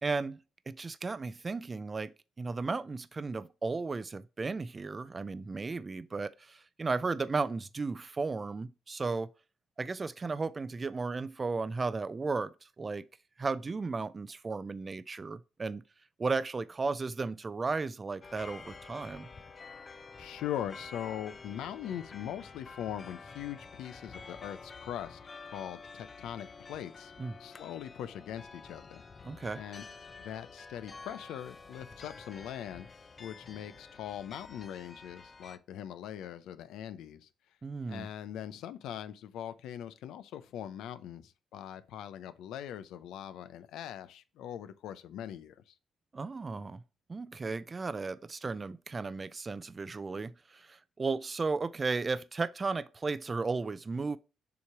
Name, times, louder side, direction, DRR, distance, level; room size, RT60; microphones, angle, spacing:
voice 1, 0.0-9.3 9.8-13.0 13.4-15.8 16.2-19.3 27.2-27.3 29.2-29.6 37.6-38.1 46.1-46.8 47.1-54.2, right 4 dB, 30° right, 0.5 m, -35 dB
sound 1, 18.2-35.6, left 4 dB, 30° left, 0.6 m, -49 dB
voice 2, 20.2-25.2 25.5-27.1 27.4-29.0 29.5-29.8 30.2-32.9 33.2-37.3 37.9-45.7, left 10 dB, 85° left, 0.6 m, -41 dB
7.0 x 3.1 x 4.7 m
cardioid pair, 90°, 0 cm